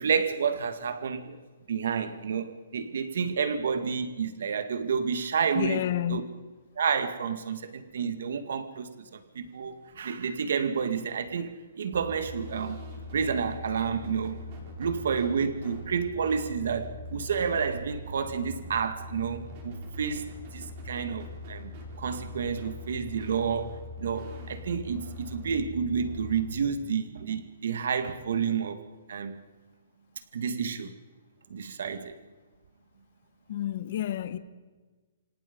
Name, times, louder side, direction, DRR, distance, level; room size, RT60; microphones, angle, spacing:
voice 1, 0.0-1.4 1.7-5.8 6.1-6.3 6.8-12.8 13.1-14.4 14.8-28.8 29.1-29.4 30.3-31.0 31.5-32.2, right 6 dB, 60° right, 2.0 m, -30 dB
voice 2, 5.5-6.2 33.5-34.4, left 12 dB, 40° left, 1.2 m, -29 dB
sound 1, 11.9-26.4, left 1 dB, 30° right, 4.5 m, -42 dB
28.5 x 26.0 x 5.4 m
hypercardioid pair, 175°, 0 cm